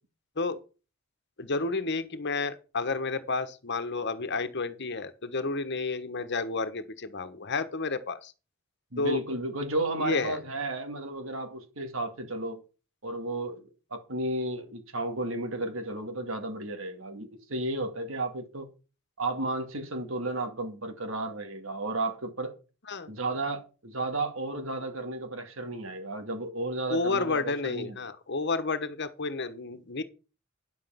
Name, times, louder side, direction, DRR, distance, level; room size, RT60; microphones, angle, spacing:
voice 1, 1.4-8.3 9.0-9.2 10.0-10.4 22.9-23.1 26.9-30.0, left 3 dB, 55° left, 1.3 m, -31 dB
voice 2, 8.9-12.6 13.0-18.7 19.2-22.5 23.1-28.0, right 2 dB, 75° right, 2.2 m, -33 dB
10.5 x 7.6 x 5.8 m
head